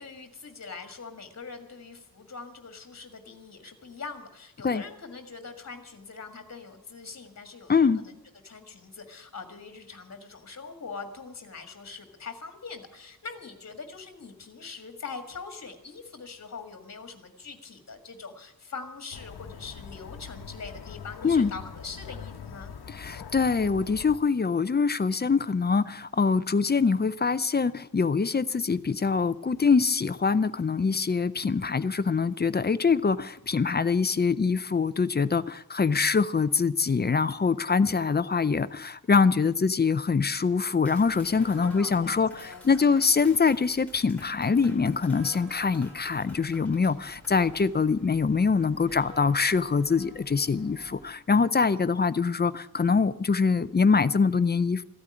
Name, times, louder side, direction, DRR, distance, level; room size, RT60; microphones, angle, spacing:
voice 1, 0.0-8.1 8.4-22.7 41.5-42.9, left 4 dB, 45° left, 7 dB, 1.9 m, -42 dB
voice 2, 7.7-8.0 21.2-21.5 22.9-54.8, left 5 dB, 25° left, 15 dB, 0.5 m, -24 dB
sound 1, 19.1-24.2, left 6 dB, 85° left, 1.0 m, -43 dB
Clapping, 40.8-47.7, left 1 dB, 5° left, 4.2 m, -52 dB
sound 2, 40.9-51.1, equal, 65° right, 4.1 m, -51 dB
15.0 x 8.7 x 9.7 m, 0.83 s
wide cardioid pair, 155°, 37 cm